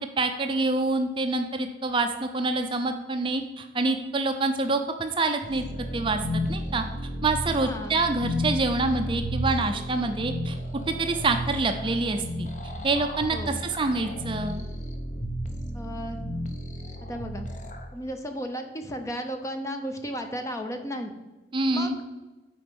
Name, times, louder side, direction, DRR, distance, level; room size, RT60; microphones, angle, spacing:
voice 1, 0.2-5.6 5.9-6.2 6.5-6.8 7.2-10.6 10.9-12.5 12.8-14.6 21.5-22.0, right 3 dB, 30° right, 6 dB, 0.5 m, -26 dB
sound 1, 5.4-17.9, equal, 45° left, 0.9 m, -33 dB
voice 2, 7.6-8.0 13.3-13.6 15.7-16.2 17.0-17.5 17.9-21.1 21.7-21.9, equal, 15° left, 6 dB, 0.7 m, -34 dB
9.2 x 4.3 x 5.2 m, 1.1 s
head